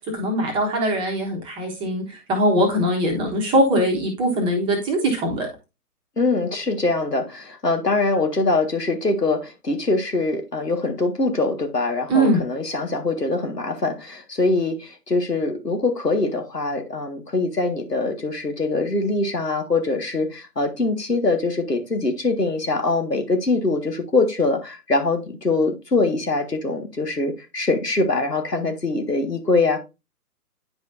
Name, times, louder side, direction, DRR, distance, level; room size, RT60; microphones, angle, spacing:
voice 1, 0.1-5.5 12.1-12.4, right 1 dB, 10° right, 1.1 m, -21 dB
voice 2, 6.2-29.8, left 3 dB, 85° left, 1.9 m, -23 dB
9.7 x 5.3 x 2.6 m
figure-of-eight pair, 130°, 47 cm